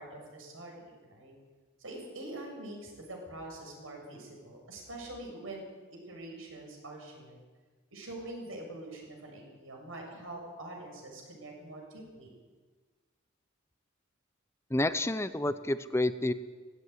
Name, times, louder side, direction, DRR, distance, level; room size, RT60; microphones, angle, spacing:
voice 1, 0.0-1.3 1.8-5.6 6.1-7.4 7.9-12.3, right 1 dB, 90° right, 1 dB, 7.2 m, -44 dB
voice 2, 14.7-16.3, left 1 dB, 15° left, 12 dB, 0.6 m, -29 dB
17.5 x 16.5 x 9.5 m, 1.4 s
head